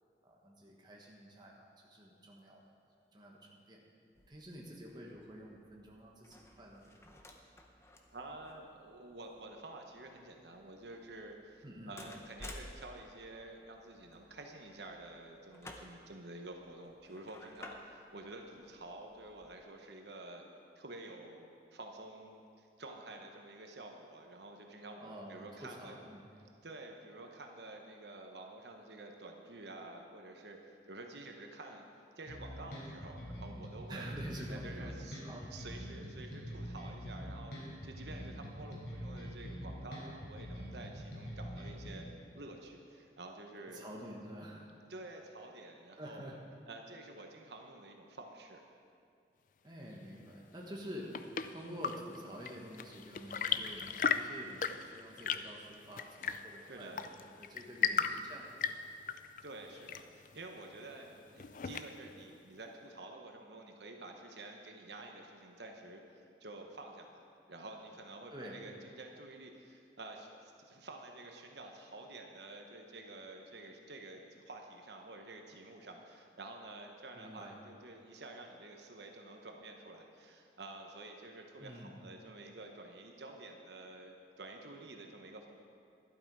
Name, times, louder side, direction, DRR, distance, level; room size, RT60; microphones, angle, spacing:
voice 1, 0.2-2.6 3.0-3.8 4.3-6.9 11.6-12.0 25.0-26.3 33.9-34.9 35.2-35.5 43.7-44.7 46.0-46.4 49.6-57.1 57.4-58.7 68.3-68.7 77.1-77.6 81.6-82.0, equal, 25° right, -2 dB, 1.4 m, -48 dB
sound 1, 4.1-19.6, left 1 dB, 15° left, 0.8 m, -55 dB
voice 2, 8.1-20.4 20.8-25.9 26.6-31.9 32.2-34.1 34.5-35.2 35.5-42.0 42.3-43.8 44.9-46.3 46.7-48.6 56.7-57.1 57.7-58.1 59.4-67.2 67.5-85.5, right 2 dB, 75° right, 3 dB, 1.1 m, -50 dB
sound 2, 32.3-41.9, equal, 85° left, 3.6 m, -44 dB
Chirp tweet / Engine / Tap, 50.7-62.2, left 7 dB, 45° left, 0.4 m, -38 dB
12.0 x 11.5 x 4.8 m, 2.4 s
head